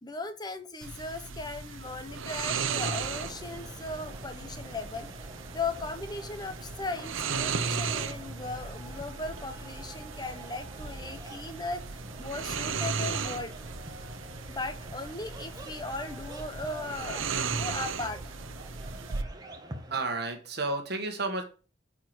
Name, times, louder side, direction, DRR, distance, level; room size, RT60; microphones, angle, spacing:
voice 1, 0.0-5.1 5.5-13.6 14.5-18.2, left 3 dB, 20° left, 8 dB, 1.0 m, -37 dB
sound 1, 0.8-19.2, right 5 dB, 85° right, 0.8 m, -36 dB
sound 2, 2.8-20.1, right 1 dB, 20° right, 1.4 m, -47 dB
voice 2, 19.9-21.4, right 3 dB, 55° right, 4 dB, 1.6 m, -31 dB
9.5 x 4.8 x 7.8 m, 0.37 s
head